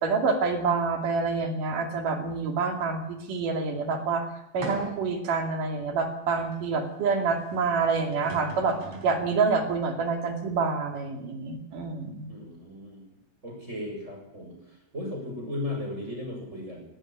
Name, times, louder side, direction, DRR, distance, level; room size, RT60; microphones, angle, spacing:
voice 1, 0.0-4.3 4.5-12.3, right 4 dB, 70° right, 5 dB, 4.0 m, -27 dB
sound 1, 4.6-5.2 5.8-5.9 7.8-7.9 8.1-9.3, right 2 dB, 50° right, 4.9 m, -39 dB
voice 2, 12.3-13.0 13.4-14.6 14.9-16.8, left 1 dB, 20° right, 0 dB, 6.1 m, -36 dB
18.0 x 17.0 x 9.0 m, 0.85 s
omnidirectional pair, 4.0 m